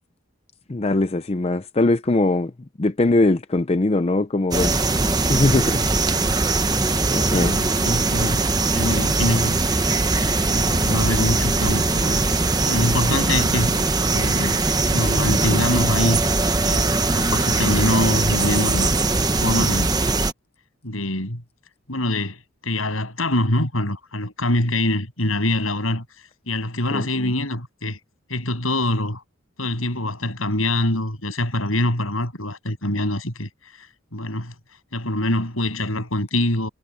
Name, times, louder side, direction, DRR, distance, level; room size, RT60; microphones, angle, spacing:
voice 1, 0.7-2.5 2.8-4.9 5.3-5.9 7.1-7.6 26.9-27.3, left 2 dB, 30° left, 0.6 m, -21 dB
sound 1, 4.5-20.3, right 3 dB, 20° right, 1.1 m, -21 dB
voice 2, 7.3-9.6 10.5-12.2 12.6-13.7 14.1-14.6 14.9-16.2 16.6-19.9 20.8-21.4 21.9-26.0 26.5-28.0 28.3-29.2 29.6-33.5 33.8-33.9 34.1-34.5 34.9-36.7, left 1 dB, 85° left, 8.0 m, -24 dB
head